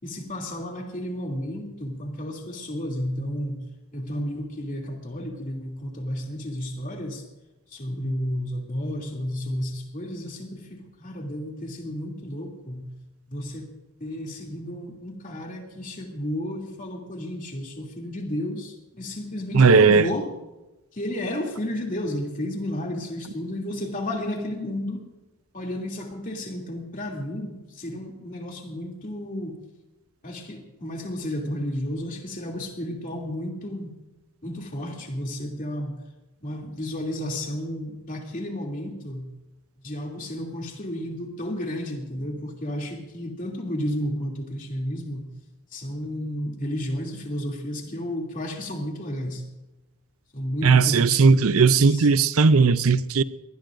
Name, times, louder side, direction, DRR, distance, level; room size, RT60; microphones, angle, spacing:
voice 1, 0.0-7.3 7.7-12.9 13.3-13.7 14.0-20.3 20.9-25.0 25.5-29.6 30.2-33.9 34.4-36.0 36.4-39.3 39.8-45.3 45.7-49.5 50.3-52.1, left 1 dB, 35° left, 0 dB, 2.9 m, -32 dB
voice 2, 19.5-20.0 50.6-53.2, right 4 dB, 65° right, 15 dB, 0.6 m, -17 dB
23.5 x 19.0 x 2.6 m, 1.0 s
head